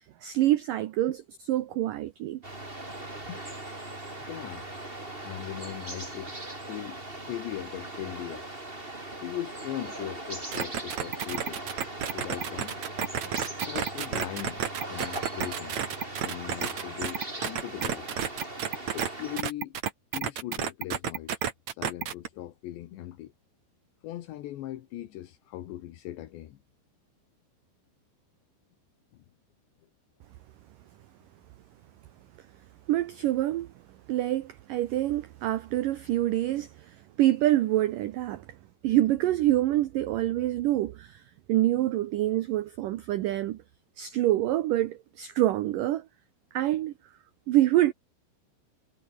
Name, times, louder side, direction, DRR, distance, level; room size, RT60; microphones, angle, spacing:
voice 1, 0.2-1.2 1.5-2.4 32.9-33.7 34.1-38.5 38.8-41.2 41.5-43.6 44.0-46.1 46.5-46.9 47.5-47.9, right 14 dB, 85° right, 1.9 m, -26 dB
sound 1, 2.4-19.4, right 2 dB, 10° right, 4.5 m, -39 dB
voice 2, 4.2-4.7 5.2-6.3 6.6-8.5 9.2-11.6 12.1-12.8 13.2-13.4 13.6-14.6 14.9-15.8 16.1-18.4 18.9-19.8 20.1-21.4 21.7-23.3 24.0-26.6 29.1-29.3, left 14 dB, 75° left, 3.7 m, -39 dB
sound 2, 10.5-19.1 19.4-22.3, right 8 dB, 50° right, 2.7 m, -31 dB
omnidirectional pair, 5.1 m